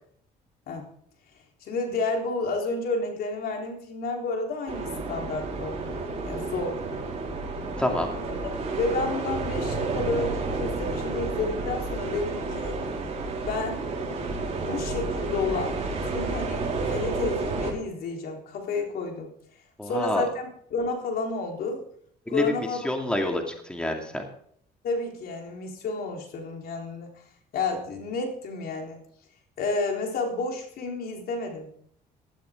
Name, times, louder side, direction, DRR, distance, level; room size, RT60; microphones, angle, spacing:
voice 1, 1.6-6.0 6.3-6.8 8.8-12.7 13.4-13.8 14.5-19.3 19.8-21.8 22.3-22.8 24.8-27.1 27.5-29.0 29.6-31.7, left 3 dB, 65° left, 2 dB, 3.8 m, -31 dB
sound 1, 4.7-17.7, right 3 dB, 40° right, 4.2 m, -31 dB
voice 2, 7.8-8.1 19.8-20.3 22.3-24.2, left 1 dB, 5° left, 2 dB, 2.3 m, -27 dB
15.5 x 13.0 x 3.7 m, 0.64 s
cardioid pair, 110°, 17 cm